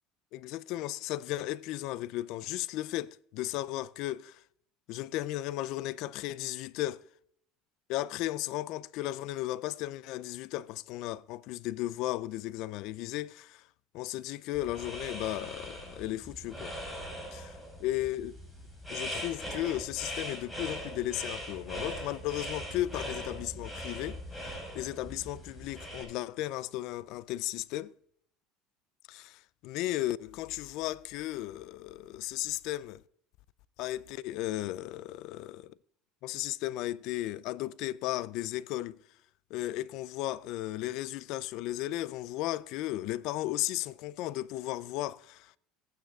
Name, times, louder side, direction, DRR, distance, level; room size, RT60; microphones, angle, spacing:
voice 1, 0.3-4.4 4.9-7.1 7.9-13.7 13.9-16.7 17.3-18.4 18.9-27.9 29.1-33.0 33.8-35.7 36.2-39.0 39.5-45.6, left 15 dB, 65° left, 0.4 m, -35 dB
sound 1, 14.5-26.0, equal, ahead, 5.0 m, -41 dB
17.5 x 9.1 x 2.4 m
supercardioid pair, 95°, 0 cm